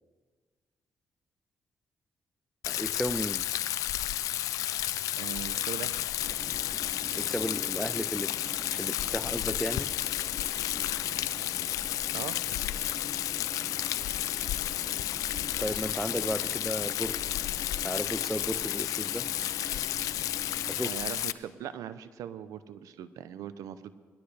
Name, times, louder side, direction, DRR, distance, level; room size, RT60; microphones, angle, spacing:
Rain, 2.6-21.3, left 13 dB, 75° left, 0.4 m, -32 dB
voice 1, 2.7-3.5 7.1-8.3 8.7-9.9 15.6-17.2 17.8-19.3 20.7-21.0, equal, ahead, 17 dB, 0.4 m, -34 dB
voice 2, 5.2-6.0 12.1-12.4 20.8-24.0, right 10 dB, 80° right, 13 dB, 0.6 m, -40 dB
sound 1, 6.2-20.8, left 2 dB, 30° left, 2.0 m, -45 dB
20.5 x 11.5 x 3.3 m, 1.5 s
supercardioid pair, 60°, 6 cm